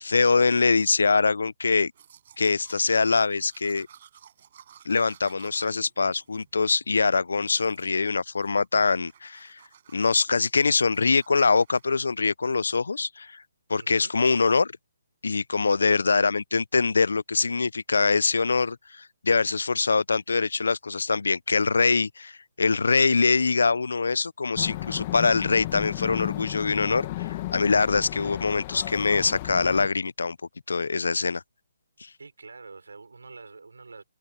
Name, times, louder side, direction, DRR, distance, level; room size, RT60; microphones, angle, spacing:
voice 1, 0.0-1.9 2.4-3.9 4.9-9.6 9.9-13.4 13.7-14.7 15.2-30.4 30.7-31.4 32.0-32.1, left 4 dB, 80° left, 0.6 m, -23 dB
Domestic sounds home sounds, 1.8-7.1 7.5-8.1 8.4-8.8 9.0-11.9, right 9 dB, 50° right, 5.5 m, -55 dB
voice 2, 13.8-14.1 32.2-34.0, right 4 dB, 85° right, 5.8 m, -46 dB
sound 1, 24.6-29.9, left 16 dB, 35° left, 1.8 m, -34 dB
hypercardioid pair, 150°, 0 cm